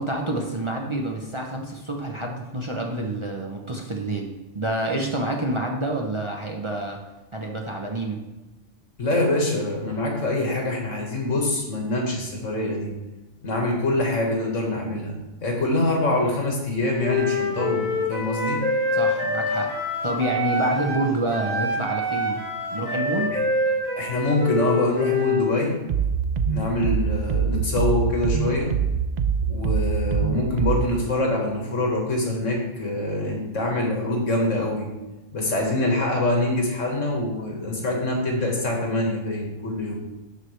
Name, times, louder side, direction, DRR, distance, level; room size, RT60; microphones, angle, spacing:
voice 1, 0.0-7.0 7.3-8.2 18.9-19.7 20.0-22.4 22.7-23.4, right 1 dB, 30° right, 0 dB, 0.8 m, -28 dB
voice 2, 9.0-12.9 13.4-15.2 15.4-18.6 23.3-23.4 24.0-25.8 26.5-28.7 29.5-34.9 35.3-40.0, left 2 dB, 80° left, 0 dB, 2.0 m, -25 dB
Wind instrument woodwind instrument, 17.0-21.0 21.3-25.5, left 2 dB, 55° right, 2.8 m, -26 dB
sound 1, 25.9-30.9, right 6 dB, 80° right, 0.3 m, -24 dB
12.5 x 4.9 x 3.3 m, 1.1 s
omnidirectional pair, 1.3 m